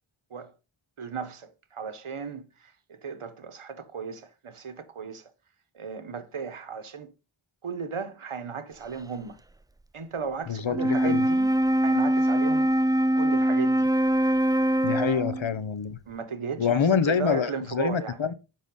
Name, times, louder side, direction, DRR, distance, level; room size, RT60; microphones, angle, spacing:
voice 1, 1.0-5.2 5.7-7.1 7.6-9.4 9.9-11.5 11.8-12.7 13.2-13.9 15.0-15.3 16.1-18.2, right 5 dB, 85° right, 1.2 m, -36 dB
voice 2, 10.5-11.3 14.8-16.0 16.6-18.3, left 7 dB, 70° left, 0.9 m, -26 dB
Wind instrument woodwind instrument, 10.7-15.5, right 1 dB, 10° right, 0.4 m, -23 dB
7.5 x 5.8 x 5.4 m
wide cardioid pair, 65°, 49 cm